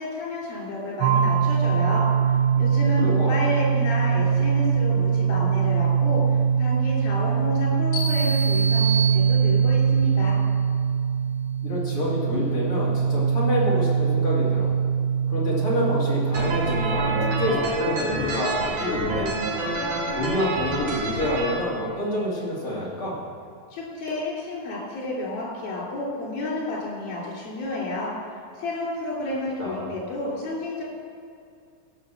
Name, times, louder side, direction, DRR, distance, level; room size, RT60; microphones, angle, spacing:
voice 1, 0.0-2.1 2.6-10.4 23.7-28.1 28.6-30.8, left 2 dB, 90° left, -4 dB, 5.0 m, -30 dB
sound 1, 1.0-17.5, right 6 dB, 85° right, 2.8 m, -22 dB
voice 2, 3.0-3.3 11.6-14.7 15.3-19.3 20.1-23.2 29.6-29.9, left 1 dB, 40° left, -6 dB, 3.4 m, -27 dB
sound 2, 7.9-9.8, right 4 dB, 60° left, 4.7 m, -29 dB
sound 3, 16.3-21.5, right 2 dB, 60° right, 3.5 m, -28 dB
15.5 x 5.8 x 7.0 m, 2.3 s
omnidirectional pair, 4.1 m